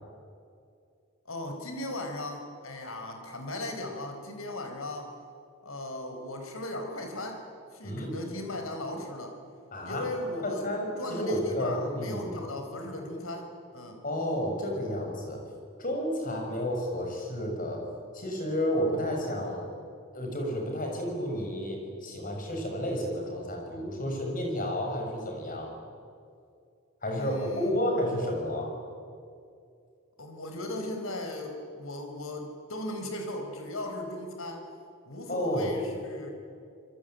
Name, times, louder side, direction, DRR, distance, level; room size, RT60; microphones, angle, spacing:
voice 1, 1.3-5.1 5.6-7.4 7.7-9.4 9.8-10.7 11.0-14.0 27.1-27.8 30.2-34.6 35.1-36.3, left 1 dB, 80° left, 4 dB, 4.4 m, -37 dB
voice 2, 7.8-8.2 9.7-10.1 10.4-12.3 14.0-15.4 15.8-17.8 18.1-19.7 20.1-25.7 27.0-28.7 35.3-35.7, equal, 40° left, 1 dB, 6.5 m, -31 dB
27.0 x 22.0 x 9.3 m, 2.4 s
head